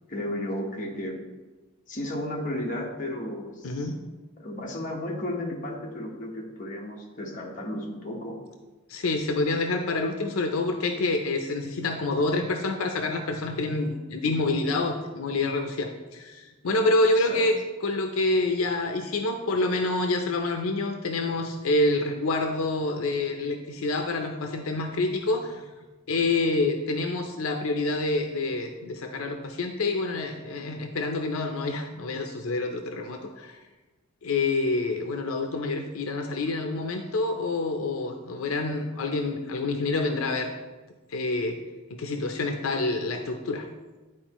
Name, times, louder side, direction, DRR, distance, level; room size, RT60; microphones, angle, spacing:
voice 1, 0.1-1.2 1.9-3.9 4.4-8.4 17.3-17.4, left 1 dB, 40° left, -2 dB, 1.2 m, -33 dB
voice 2, 3.6-4.0 8.9-17.6 17.8-25.6 26.1-33.6 34.2-40.5 41.1-41.6 41.9-43.7, left 2 dB, 85° left, 5 dB, 0.6 m, -27 dB
10.5 x 4.4 x 3.0 m, 1.2 s
head